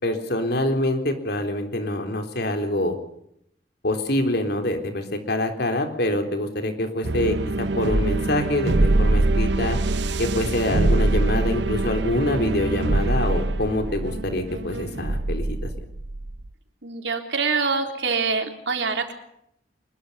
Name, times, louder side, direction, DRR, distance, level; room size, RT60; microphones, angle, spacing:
voice 1, 0.0-3.0 3.8-9.8 10.2-15.7, left 1 dB, 65° left, 5 dB, 3.9 m, -25 dB
sound 1, 7.0-16.5, right 2 dB, 75° right, 0.9 m, -24 dB
voice 2, 16.8-19.1, right 4 dB, 90° right, 5 dB, 3.6 m, -25 dB
25.0 x 22.0 x 5.7 m, 0.74 s
head